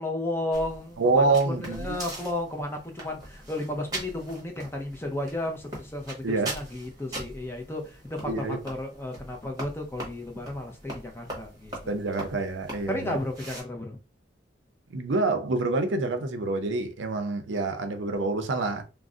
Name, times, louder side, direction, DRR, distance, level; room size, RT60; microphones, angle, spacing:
voice 1, 0.0-11.9 12.9-14.0, left 1 dB, 10° left, 0.5 m, -33 dB
sound 1, 0.5-13.6, right 1 dB, 20° right, 1.0 m, -41 dB
voice 2, 1.0-2.0 6.2-6.6 8.3-8.6 11.9-13.2 14.9-18.8, right 3 dB, 85° right, 0.6 m, -27 dB
2.5 x 2.0 x 3.6 m
head